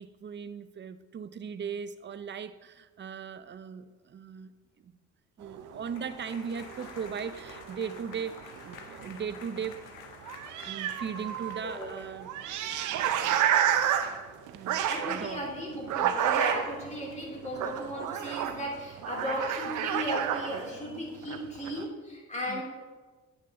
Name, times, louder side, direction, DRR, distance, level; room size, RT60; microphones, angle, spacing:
voice 1, 0.0-4.5 4.8-5.0 5.4-9.8 10.6-12.3 13.1-13.5 14.5-15.4 16.0-16.2 22.5-22.6, right 6 dB, 35° right, 12 dB, 0.6 m, -38 dB
sound 1, 5.4-9.7 10.0-10.1 10.2-21.0 21.2-21.8, right 10 dB, 85° right, 0.7 m, -31 dB
sound 2, 5.8-12.6, left 6 dB, 90° left, 1.3 m, -49 dB
voice 2, 14.9-22.6, equal, 25° left, -3 dB, 3.3 m, -36 dB
9.2 x 8.8 x 3.7 m, 1.3 s
cardioid pair, 90°, 30 cm